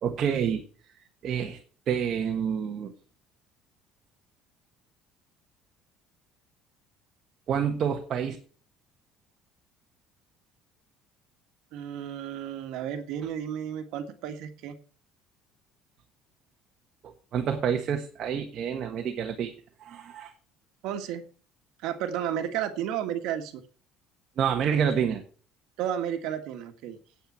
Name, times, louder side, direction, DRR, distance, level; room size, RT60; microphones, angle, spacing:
voice 1, 0.0-0.6 1.2-1.6 1.9-2.9 7.5-8.4 17.0-19.5 19.8-20.3 24.4-25.2, right 8 dB, 40° right, 3 dB, 1.3 m, -28 dB
voice 2, 11.7-14.7 20.8-21.2 21.8-23.6 25.8-27.0, right 10 dB, 65° right, 7 dB, 1.6 m, -32 dB
9.1 x 8.5 x 7.2 m, 0.42 s
cardioid pair, 170°, 0 cm